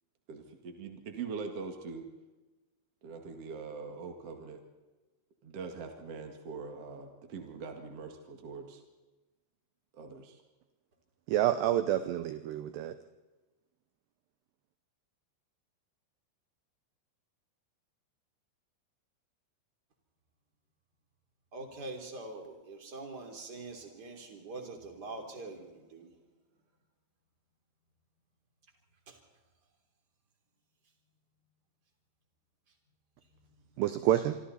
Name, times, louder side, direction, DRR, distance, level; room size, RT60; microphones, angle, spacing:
voice 1, 0.3-2.1 3.0-4.6 5.4-8.8 9.9-10.4, right 5 dB, 55° right, 4 dB, 1.6 m, -42 dB
voice 2, 11.3-13.0 33.8-34.4, right 12 dB, 80° right, 11 dB, 2.4 m, -28 dB
voice 3, 21.5-26.1 29.1-29.2, right 2 dB, 25° right, 3 dB, 3.0 m, -44 dB
26.0 x 25.5 x 4.2 m, 1.1 s
omnidirectional pair, 5.9 m